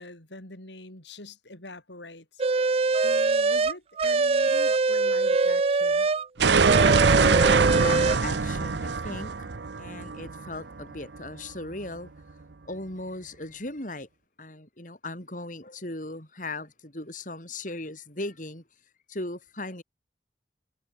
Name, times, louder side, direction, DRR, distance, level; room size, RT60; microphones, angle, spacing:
voice 1, 0.0-6.1, left 2 dB, 80° left, 7.1 m, -44 dB
sound 1, 2.4-6.3 6.6-8.2, right 3 dB, 35° right, 0.4 m, -23 dB
sound 2, 6.4-11.2, right 4 dB, 75° right, 0.8 m, -23 dB
voice 2, 7.2-9.5 9.8-12.1 12.7-14.1 14.4-18.6 19.1-19.8, left 2 dB, 45° left, 5.6 m, -38 dB
head